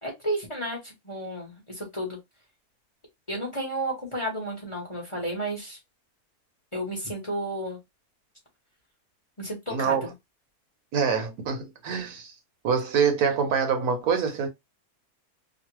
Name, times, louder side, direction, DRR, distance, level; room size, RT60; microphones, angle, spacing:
voice 1, 0.0-2.2 3.3-5.8 6.7-7.8 9.4-10.1, right 1 dB, 25° left, 1.0 m, -32 dB
voice 2, 9.7-10.1 10.9-12.3 12.6-14.5, right 6 dB, 75° right, 1.3 m, -25 dB
2.9 x 2.3 x 3.0 m
omnidirectional pair, 1.6 m